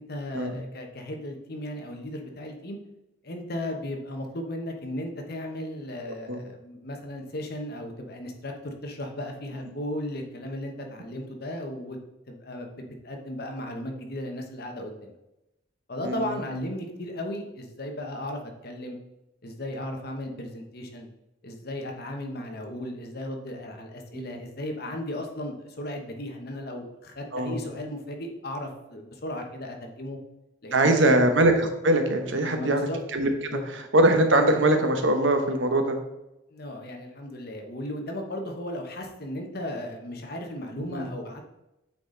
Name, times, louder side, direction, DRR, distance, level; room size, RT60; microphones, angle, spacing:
voice 1, 0.0-2.8 3.2-12.0 12.3-15.1 15.9-19.0 19.4-21.1 21.4-30.2 30.6-31.3 32.4-33.0 33.5-33.6 36.5-41.4, left 1 dB, 50° left, 3 dB, 1.0 m, -35 dB
voice 2, 30.7-32.8 33.1-33.3 33.9-36.0 40.8-41.1, right 1 dB, 70° right, 6 dB, 0.9 m, -22 dB
8.3 x 4.1 x 3.9 m, 0.93 s
head